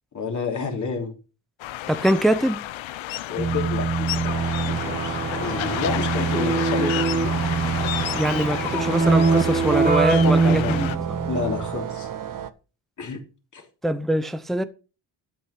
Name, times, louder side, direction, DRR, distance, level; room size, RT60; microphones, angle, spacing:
voice 1, 0.1-1.2 3.3-7.3 10.1-10.8 11.3-12.1 13.0-13.2 13.5-13.7, left 5 dB, 40° left, 3.6 m, -30 dB
sound 1, 1.6-11.0, left 14 dB, 80° left, 0.8 m, -31 dB
voice 2, 1.9-2.6 8.1-10.9 13.8-14.6, right 1 dB, ahead, 0.6 m, -23 dB
Keyboard (musical), 3.4-11.8, right 4 dB, 20° right, 1.1 m, -23 dB
sound 2, 4.2-12.5, right 9 dB, 45° right, 0.9 m, -33 dB
13.0 x 6.2 x 5.8 m
cardioid pair, 140°, 46 cm